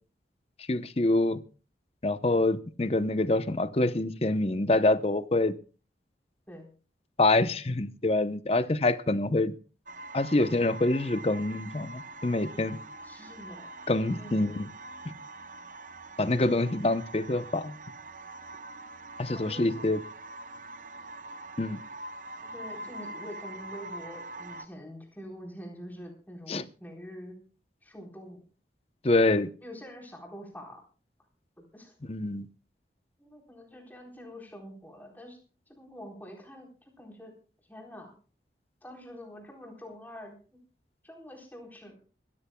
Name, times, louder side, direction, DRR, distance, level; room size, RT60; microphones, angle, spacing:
voice 1, 0.7-1.4 2.0-5.6 7.2-9.5 10.1-12.8 13.9-14.7 16.2-17.8 19.2-20.0 21.6-21.8 26.5-26.6 29.0-29.5 32.1-32.4, left 2 dB, 35° left, 13 dB, 0.8 m, -26 dB
sound 1, 9.9-24.7, right 2 dB, 45° right, 0.8 m, -44 dB
voice 2, 13.0-13.7 14.1-14.5 19.3-19.9 22.5-27.4 27.8-28.4 29.6-30.8 31.6-31.9 33.2-35.4 35.7-37.3 37.7-38.1 38.8-40.6 41.0-41.9, equal, 10° left, 0 dB, 4.0 m, -45 dB
25.5 x 14.0 x 2.3 m, 0.36 s
head